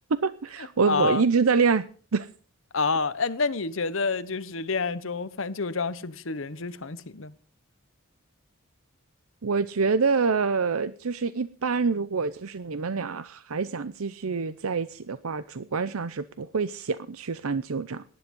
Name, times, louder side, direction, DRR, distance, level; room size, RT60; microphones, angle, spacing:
voice 1, 0.1-1.8 2.1-2.3 9.4-18.0, right 5 dB, 85° right, 0.7 m, -26 dB
voice 2, 0.9-1.2 2.7-7.3, left 4 dB, 65° left, 1.1 m, -28 dB
18.5 x 10.5 x 5.4 m
head